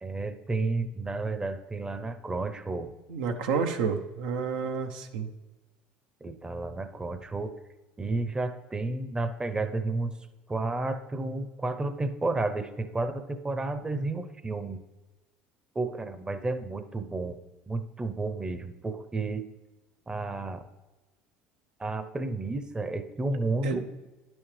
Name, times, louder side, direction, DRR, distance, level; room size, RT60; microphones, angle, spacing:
voice 1, 0.0-2.9 6.2-7.5 8.0-10.1 10.5-14.8 15.7-17.4 17.7-19.4 20.1-20.7 21.8-23.9, right 3 dB, 15° right, 9 dB, 0.7 m, -31 dB
voice 2, 3.1-5.3 23.6-23.8, right 5 dB, 85° right, 5 dB, 0.7 m, -30 dB
10.5 x 6.2 x 3.3 m, 1.1 s
supercardioid pair, 80°, 5 cm